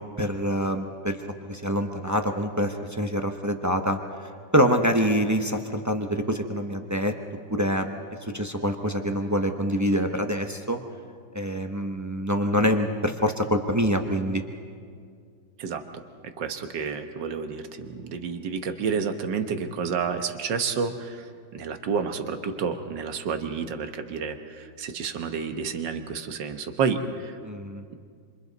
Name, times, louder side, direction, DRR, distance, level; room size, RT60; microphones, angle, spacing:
voice 1, 0.2-1.2 1.5-7.1 7.5-10.8 11.3-14.4 27.4-27.8, equal, 20° right, 4 dB, 0.5 m, -25 dB
voice 2, 15.6-16.0 16.4-21.3 21.5-27.4, right 6 dB, 75° right, 7 dB, 1.8 m, -30 dB
27.0 x 27.0 x 4.1 m, 2.2 s
omnidirectional pair, 2.0 m